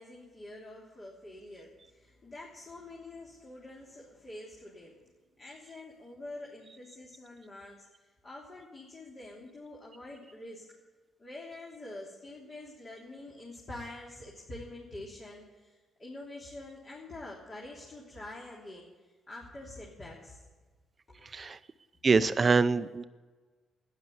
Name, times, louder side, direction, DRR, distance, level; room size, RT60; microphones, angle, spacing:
voice 1, 0.0-10.7 11.2-20.4 21.1-21.4, left 2 dB, 35° left, -4 dB, 3.3 m, -46 dB
voice 2, 22.0-23.0, right 4 dB, 35° right, 13 dB, 0.6 m, -24 dB
12.5 x 10.5 x 9.4 m, 1.4 s
cardioid pair, 90°, 0 cm